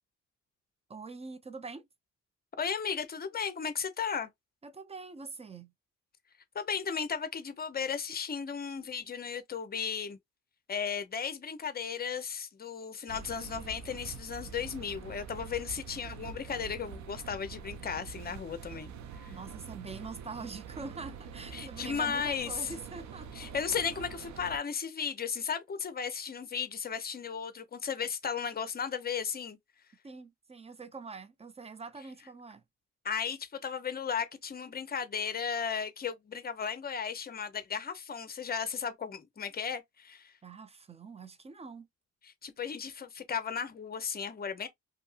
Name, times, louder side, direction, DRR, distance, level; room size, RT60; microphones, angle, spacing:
voice 1, 0.9-1.9 4.6-5.7 19.3-23.5 30.0-32.6 40.4-41.9, right 4 dB, 20° right, 0.4 m, -44 dB
voice 2, 2.6-4.3 6.5-10.2 10.7-18.9 19.2-19.3 21.5-22.7 23.3-29.6 33.0-40.3 42.2-44.7, left 6 dB, 30° left, 0.7 m, -35 dB
sound 1, 13.1-24.6, right 6 dB, 70° right, 0.6 m, -45 dB
2.7 x 2.6 x 2.4 m
cardioid pair, 90°, 30 cm